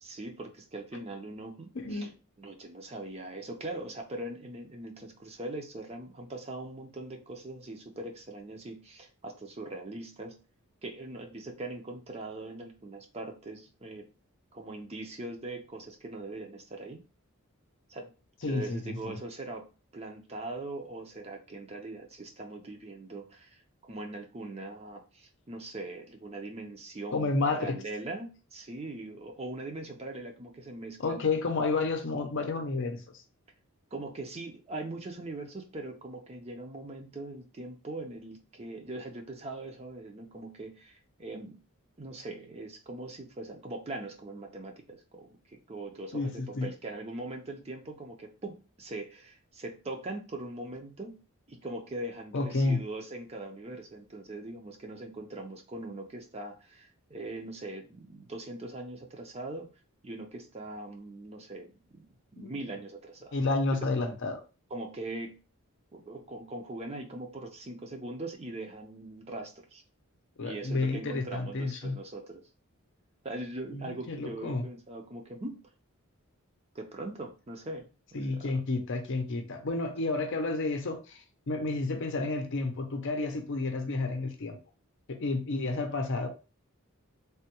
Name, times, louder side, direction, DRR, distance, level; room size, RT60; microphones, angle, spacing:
voice 1, 0.0-2.1 2.4-10.3 10.8-14.1 14.5-17.0 17.9-18.1 18.4-19.6 19.9-23.6 23.9-31.2 33.9-41.6 42.0-51.2 51.5-59.7 60.0-62.0 62.3-63.3 64.0-64.1 64.7-65.3 65.9-69.8 70.4-72.4 73.2-75.6 76.7-78.5, right 2 dB, 30° right, 0.5 m, -41 dB
voice 2, 1.7-2.1 18.4-19.2 27.1-27.7 31.0-33.0 46.1-46.7 52.3-52.8 62.4-62.6 63.3-64.4 70.4-72.0 73.7-74.6 78.1-84.6 85.1-86.3, left 3 dB, 55° left, 0.6 m, -31 dB
3.4 x 2.2 x 2.8 m
head